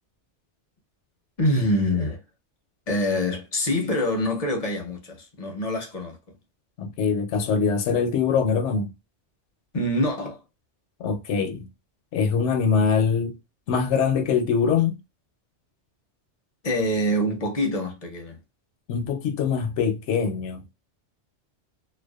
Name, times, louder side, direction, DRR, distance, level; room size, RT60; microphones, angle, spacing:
voice 1, 1.4-2.2 2.9-6.2 9.7-10.4 16.6-18.4, left 1 dB, 40° left, 0.6 m, -25 dB
voice 2, 6.8-8.9 11.0-11.7 12.1-13.4 13.7-15.0 18.9-20.6, left 6 dB, 75° left, 0.9 m, -23 dB
2.5 x 2.2 x 2.2 m
omnidirectional pair, 1.2 m